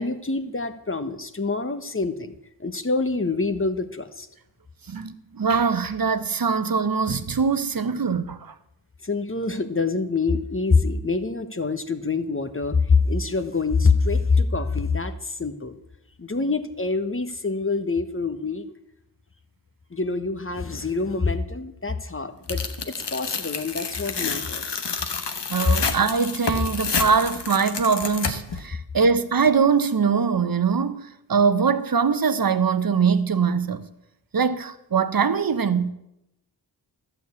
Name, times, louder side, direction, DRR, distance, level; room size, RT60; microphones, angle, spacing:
voice 1, 0.0-2.3 2.6-4.3 9.0-15.7 16.2-18.6 19.9-24.8, left 4 dB, 30° left, 1.1 m, -25 dB
voice 2, 4.9-8.5 25.5-33.9 34.3-35.9, right 5 dB, 50° right, 1.0 m, -22 dB
Tearing, 22.5-28.6, left 5 dB, 70° left, 1.2 m, -29 dB
12.0 x 6.7 x 8.3 m
cardioid pair, 45°, 44 cm